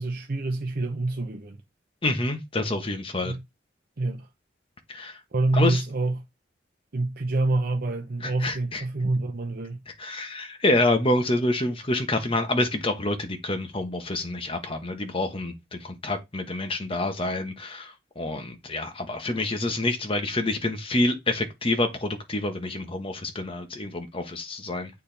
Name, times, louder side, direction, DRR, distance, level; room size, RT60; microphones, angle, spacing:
voice 1, 0.0-1.6 3.2-3.4 4.0-4.3 5.3-6.2 6.9-9.8, right 2 dB, 55° right, 0.7 m, -27 dB
voice 2, 2.0-3.3 4.9-5.2 5.5-5.8 8.2-8.8 9.9-24.9, left 2 dB, 30° left, 1.2 m, -27 dB
8.2 x 4.3 x 3.4 m
head